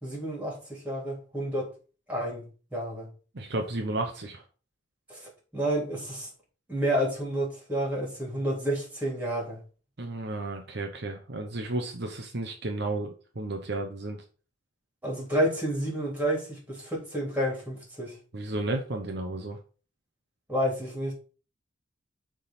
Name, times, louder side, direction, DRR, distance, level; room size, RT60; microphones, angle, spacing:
voice 1, 0.0-1.7 2.1-2.4 2.7-3.1 5.1-5.2 5.5-6.3 6.7-9.6 15.0-18.2 20.5-21.1, right 1 dB, 10° right, 3.3 m, -30 dB
voice 2, 3.3-4.4 10.0-13.1 13.4-14.2 18.3-19.6, right 2 dB, 55° right, 0.9 m, -32 dB
6.7 x 3.9 x 5.7 m
head